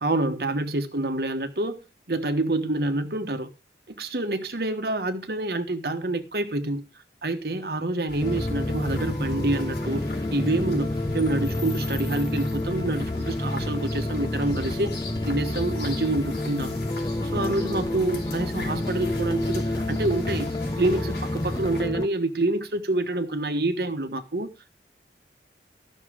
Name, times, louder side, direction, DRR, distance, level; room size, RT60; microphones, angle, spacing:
voice 1, 0.0-1.8 2.1-3.5 4.0-6.8 7.2-10.0 10.3-15.0 15.2-16.8 17.3-20.5 20.8-24.5, right 2 dB, 60° right, 1.2 m, -27 dB
sound 1, 8.1-21.8, left 2 dB, 70° left, 4.4 m, -37 dB
sound 2, 8.2-22.1, left 1 dB, 20° left, 0.7 m, -29 dB
13.5 x 6.5 x 4.9 m
head